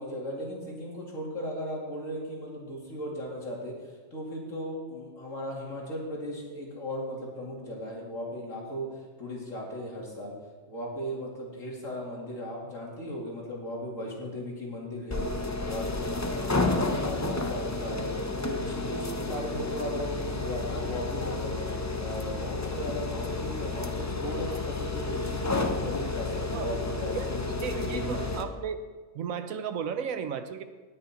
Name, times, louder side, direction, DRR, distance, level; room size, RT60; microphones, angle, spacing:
voice 1, 0.0-3.7 4.1-8.9 9.2-10.3 10.7-15.3 15.7-18.1 18.4-21.6 22.0-28.2, equal, 70° left, -3 dB, 2.9 m, -37 dB
sound 1, 15.1-28.4, left 3 dB, 30° left, 0.3 m, -31 dB
voice 2, 27.6-28.8 29.1-30.6, right 7 dB, 85° right, 9 dB, 1.2 m, -34 dB
19.0 x 6.4 x 4.2 m, 1.4 s
omnidirectional pair, 1.4 m